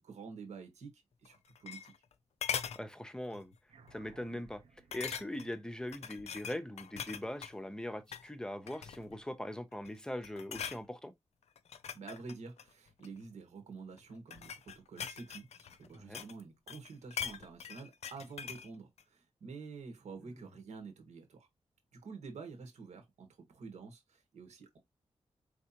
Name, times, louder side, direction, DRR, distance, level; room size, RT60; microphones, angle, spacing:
voice 1, 0.0-1.9 11.9-21.5 21.9-24.8, right 4 dB, 90° right, 1.7 m, -49 dB
sound 1, 1.2-2.1 2.4-2.8 3.3-3.5 3.9-4.0 4.9-5.5 5.9-7.5 8.0-8.3 8.7-9.2 9.7-10.0 10.2-10.8 11.5-13.2 14.0-16.4 16.7-18.7 19.0-19.1, left 8 dB, 75° left, 0.5 m, -42 dB
voice 2, 2.7-3.5 3.9-11.1 15.9-16.2 20.2-20.5, left 1 dB, 5° left, 0.6 m, -41 dB
sound 2, 3.7-8.4, right 4 dB, 65° right, 0.7 m, -63 dB
4.7 x 3.4 x 2.8 m
wide cardioid pair, 150°, 11 cm